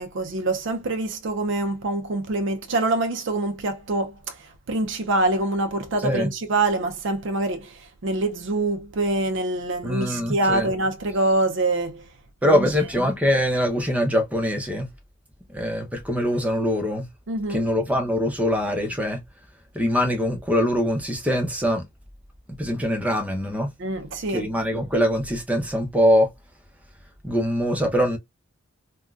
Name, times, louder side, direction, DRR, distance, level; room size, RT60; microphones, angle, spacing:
voice 1, 0.0-12.1 12.4-12.7 17.3-17.7 23.8-24.5, right 2 dB, 60° right, 0.5 m, -25 dB
voice 2, 9.8-10.7 12.4-14.9 15.5-17.1 17.5-19.2 19.7-21.9 22.6-23.7 24.3-26.3 27.2-28.2, equal, 5° right, 0.7 m, -23 dB
3.6 x 2.2 x 2.4 m
head